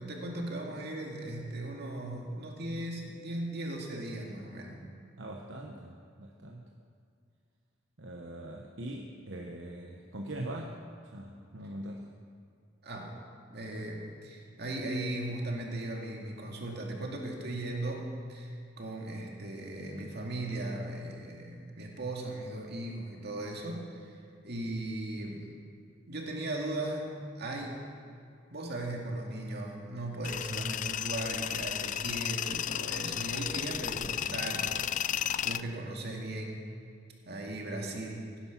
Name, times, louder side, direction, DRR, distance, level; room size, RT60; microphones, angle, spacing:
voice 1, 0.0-4.8 12.8-13.2 13.5-25.5 26.1-27.8 28.5-36.6 37.3-38.3, right 1 dB, 60° right, 0 dB, 2.3 m, -37 dB
voice 2, 5.2-6.7 8.0-10.8 11.1-12.0, right 1 dB, 75° right, 0 dB, 1.1 m, -42 dB
Tools, 30.2-35.6, left 10 dB, 40° left, 0.3 m, -33 dB
16.5 x 10.0 x 6.0 m, 2.3 s
head